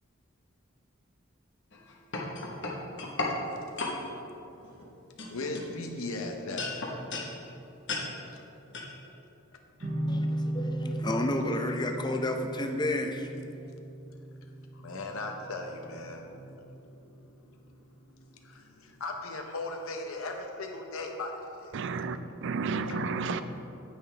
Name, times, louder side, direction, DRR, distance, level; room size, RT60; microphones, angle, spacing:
sound 1, 1.7-3.4 3.8-4.0 4.6-4.9 5.2-6.1 6.6-7.3 7.9-8.1 8.7-8.9, left 3 dB, 60° left, 1.2 m, -34 dB
voice 1, 3.1-4.1 5.3-6.8 8.3-8.4 9.8-9.9 14.7-21.8 22.9-23.0, left 2 dB, 75° left, 3 dB, 0.8 m, -39 dB
sound 2, 9.8-17.0, right 1 dB, 40° right, 0.8 m, -36 dB
voice 2, 10.1-13.3, left 1 dB, 20° left, 4 dB, 0.6 m, -31 dB
voice 3, 21.7-23.4, right 4 dB, 60° right, 11 dB, 0.4 m, -32 dB
9.3 x 8.8 x 3.4 m, 2.9 s
head